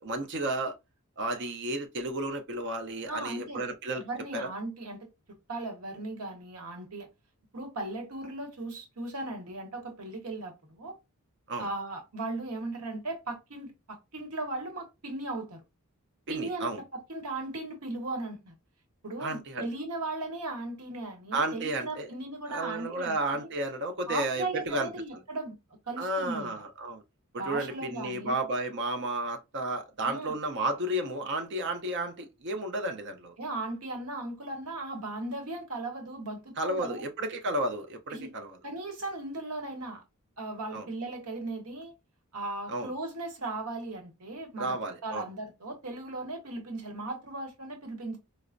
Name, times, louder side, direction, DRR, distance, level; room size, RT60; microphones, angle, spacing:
voice 1, 0.0-0.7 1.2-4.0 4.3-4.5 11.5-11.7 16.3-16.8 19.2-19.7 21.3-22.1 22.5-24.9 26.0-27.0 27.3-33.3 36.6-38.6 40.7-40.9 42.7-42.9 44.6-45.2, right 2 dB, 55° right, 0.6 m, -32 dB
voice 2, 3.1-3.6 3.9-5.1 5.5-7.1 7.5-11.0 11.6-15.6 16.3-18.5 19.0-23.5 24.1-25.6 25.9-26.5 27.4-28.4 30.1-30.3 33.4-37.0 38.1-38.3 38.6-40.0 40.4-41.9 42.3-44.8 45.0-48.2, right 2 dB, 80° right, 1.0 m, -37 dB
4.2 x 2.0 x 2.5 m
head